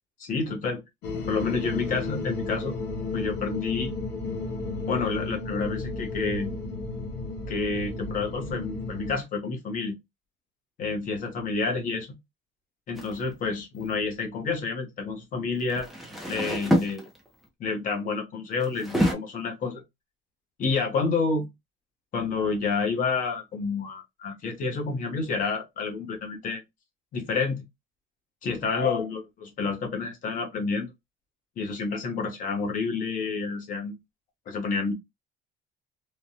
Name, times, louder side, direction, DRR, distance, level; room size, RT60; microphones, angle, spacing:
voice 1, 0.2-0.8 1.3-2.8 3.1-3.9 4.9-6.6 7.5-10.0 10.8-12.2 12.9-15.9 16.3-17.0 17.6-19.8 20.6-21.5 22.1-26.6 27.1-27.6 28.4-30.9 31.6-34.0 34.5-34.9, left 4 dB, 40° left, 1.0 m, -29 dB
sound 1, 1.0-9.2, left 3 dB, 60° left, 1.0 m, -33 dB
sound 2, 13.0-13.2 15.6-17.4 18.6-19.1, equal, ahead, 0.6 m, -27 dB
3.3 x 2.2 x 2.7 m
cardioid pair, 155°, 20 cm